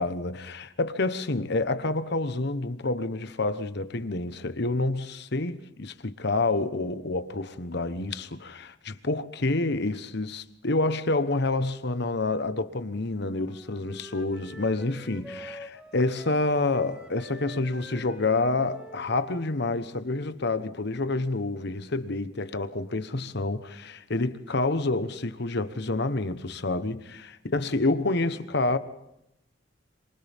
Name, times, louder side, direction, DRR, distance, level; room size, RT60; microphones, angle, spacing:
voice 1, 0.0-28.8, left 2 dB, 60° left, 1.2 m, -28 dB
Wind instrument woodwind instrument, 12.9-16.5 16.7-20.6, right 1 dB, 5° right, 1.5 m, -47 dB
28.5 x 26.5 x 3.6 m
head